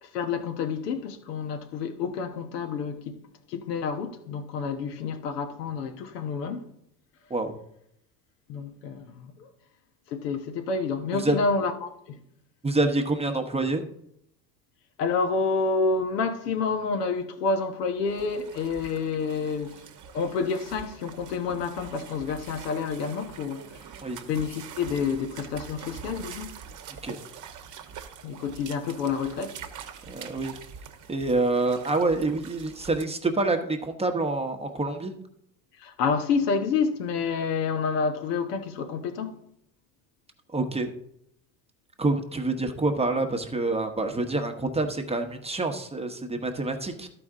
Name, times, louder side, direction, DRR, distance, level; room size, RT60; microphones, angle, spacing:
voice 1, 0.0-3.2 3.5-6.7 8.5-9.5 10.1-12.2 15.0-19.8 20.1-26.5 28.2-29.6 35.8-39.4, left 5 dB, 75° left, 1.2 m, -29 dB
voice 2, 12.6-13.9 24.0-24.2 26.9-27.2 30.1-30.6 31.1-35.1 40.5-40.9 42.0-47.1, right 2 dB, 10° right, 1.1 m, -27 dB
sound 1, 18.1-33.0, right 7 dB, 40° right, 1.1 m, -44 dB
13.0 x 5.0 x 3.7 m
hypercardioid pair, 75°, 48 cm